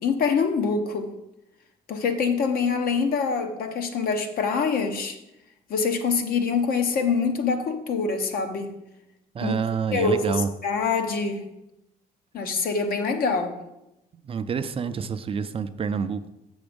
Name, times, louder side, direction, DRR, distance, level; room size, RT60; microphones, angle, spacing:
voice 1, 0.0-1.1 1.9-5.2 5.7-8.7 9.4-9.5 9.9-11.4 12.3-13.5, left 5 dB, 60° left, 6 dB, 1.1 m, -25 dB
voice 2, 9.3-10.5 14.2-16.3, right 6 dB, 35° right, 10 dB, 0.4 m, -27 dB
7.1 x 6.0 x 5.2 m, 0.89 s
cardioid pair, 110°, 17 cm